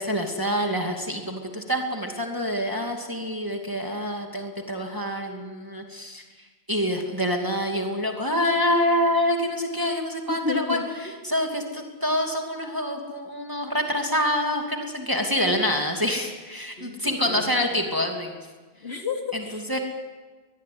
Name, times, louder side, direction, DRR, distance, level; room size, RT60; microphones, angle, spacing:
voice 1, 0.0-6.2 6.7-18.3 19.3-19.8, equal, 20° right, 2 dB, 2.6 m, -26 dB
voice 2, 10.4-10.9 11.2-11.3 16.8-17.5 18.8-19.8, left 4 dB, 75° left, 3 dB, 3.0 m, -32 dB
23.5 x 21.0 x 9.5 m, 1.4 s
omnidirectional pair, 1.1 m